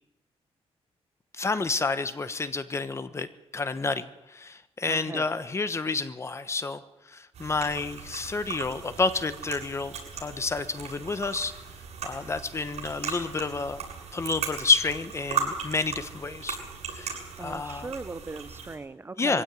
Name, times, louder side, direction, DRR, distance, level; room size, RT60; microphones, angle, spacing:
voice 1, 1.3-3.3 3.5-6.8 7.1-11.5 12.0-13.8 14.1-16.6 16.9-17.9 19.2-19.4, left 3 dB, 25° left, 12 dB, 1.2 m, -29 dB
voice 2, 4.9-5.3 17.4-19.4, right 3 dB, 20° right, 13 dB, 0.7 m, -38 dB
sound 1, 7.3-18.7, right 6 dB, 85° right, 7.6 m, -37 dB
22.5 x 16.5 x 9.3 m, 0.94 s
wide cardioid pair, 155°, 11 cm